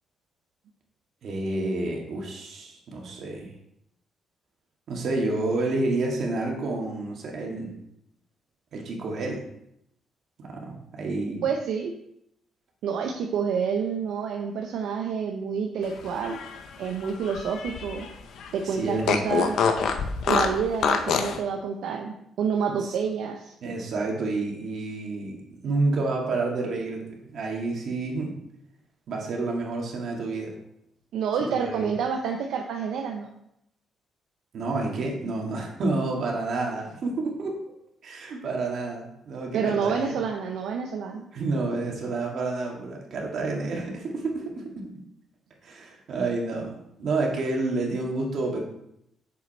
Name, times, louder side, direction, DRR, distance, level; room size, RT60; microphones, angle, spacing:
voice 1, 1.2-3.5 4.9-7.7 8.7-9.5 10.4-11.4 18.6-19.2 22.8-23.0 23.6-25.4 25.6-28.3 29.1-30.6 31.6-31.9 34.5-37.6 38.0-40.2 41.3-44.9 45.6-48.6, right 3 dB, 65° right, 0 dB, 1.9 m, -29 dB
voice 2, 11.4-11.9 12.8-16.4 16.8-18.1 18.5-19.5 20.2-23.5 31.1-33.3 39.5-41.3, right 6 dB, 80° right, 3 dB, 0.6 m, -28 dB
Fart, 16.1-18.1 18.4-18.5 19.0-21.4, left 6 dB, 75° left, 0.7 m, -26 dB
6.9 x 5.1 x 4.3 m, 0.77 s
cardioid pair, 90°, 0 cm